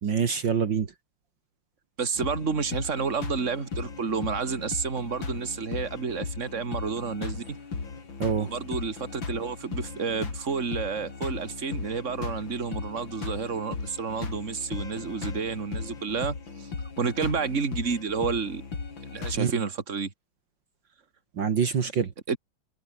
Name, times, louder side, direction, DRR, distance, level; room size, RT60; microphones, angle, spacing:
voice 1, 0.0-0.9 8.2-8.5 19.4-19.5 21.4-22.1, right 6 dB, 60° right, 2.5 m, -25 dB
voice 2, 2.0-7.6 8.4-16.7 17.0-18.6 19.1-20.1 22.3-22.4, right 5 dB, 35° right, 2.7 m, -30 dB
sound 1, 2.1-19.4, left 4 dB, 65° left, 4.2 m, -37 dB
omnidirectional pair, 2.3 m